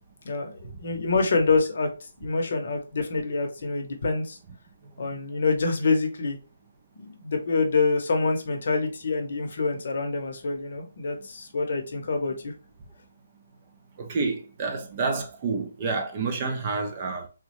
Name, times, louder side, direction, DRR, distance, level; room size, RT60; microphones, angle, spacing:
voice 1, 0.2-4.4 5.0-6.4 7.0-12.5, left 3 dB, 50° left, 0.7 m, -26 dB
voice 2, 14.0-17.3, right 4 dB, 25° right, 0.4 m, -29 dB
3.4 x 2.1 x 2.9 m
hypercardioid pair, 170°, 0 cm